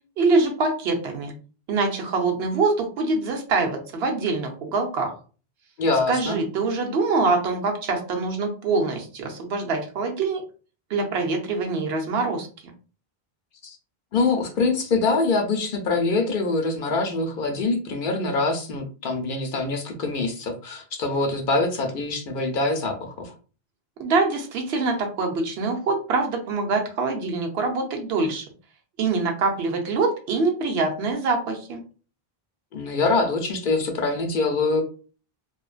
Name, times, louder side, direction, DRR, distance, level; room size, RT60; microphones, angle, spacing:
voice 1, 0.2-1.3 1.7-5.1 6.1-10.4 10.9-12.5 24.0-28.4 29.0-31.8, right 3 dB, 85° right, 3 dB, 0.9 m, -24 dB
voice 2, 5.8-6.4 13.6-13.8 14.1-23.3 32.7-34.8, left 3 dB, 60° left, 4 dB, 0.7 m, -24 dB
2.5 x 2.1 x 2.4 m, 0.37 s
omnidirectional pair, 1.0 m